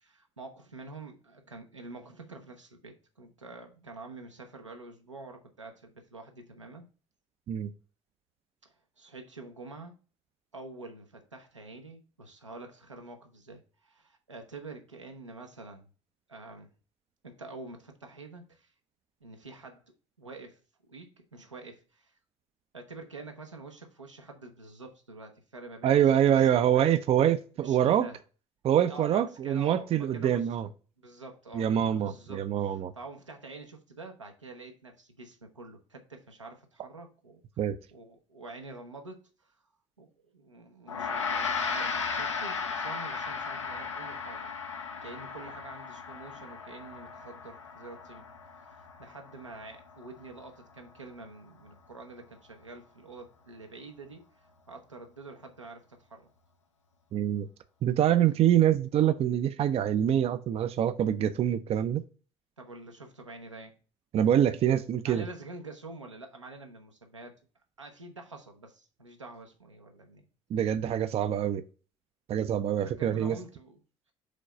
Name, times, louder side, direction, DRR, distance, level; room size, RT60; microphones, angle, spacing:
voice 1, 0.0-6.9 8.6-10.0 10.5-15.9 16.3-16.7 17.2-18.7 19.2-19.8 20.2-20.6 20.9-22.2 22.7-26.9 27.6-28.2 28.8-30.5 31.0-31.7 32.0-37.4 37.9-39.6 40.0-44.5 45.0-48.3 48.7-56.3 62.6-63.7 65.0-67.3 67.8-70.3 71.0-71.1 72.8-73.8, right 3 dB, 85° right, 1.0 m, -47 dB
voice 2, 25.8-28.1 28.6-30.7 31.5-32.9 37.6-37.8 57.1-57.5 57.8-62.0 64.1-65.2 70.5-71.6 72.3-73.4, right 10 dB, 40° right, 0.5 m, -25 dB
Gong, 40.9-50.4, left 5 dB, 80° left, 0.8 m, -36 dB
5.1 x 3.9 x 5.6 m
figure-of-eight pair, 50°, 15 cm